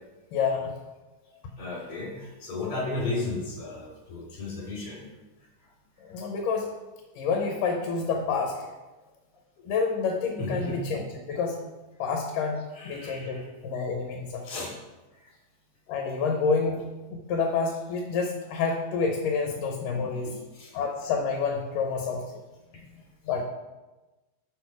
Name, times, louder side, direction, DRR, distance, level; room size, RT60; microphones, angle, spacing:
voice 1, 0.3-0.7 6.1-6.7 7.2-8.6 9.6-11.6 12.0-14.6 15.9-20.3 20.7-22.2 23.3-23.4, left 5 dB, 80° left, 2 dB, 2.5 m, -28 dB
voice 2, 1.6-5.0 8.5-8.7 10.4-10.8 12.8-13.5 14.4-14.7 19.9-20.7 22.7-23.0, left 2 dB, 45° left, -5 dB, 3.8 m, -34 dB
6.7 x 6.3 x 4.7 m, 1.1 s
omnidirectional pair, 3.8 m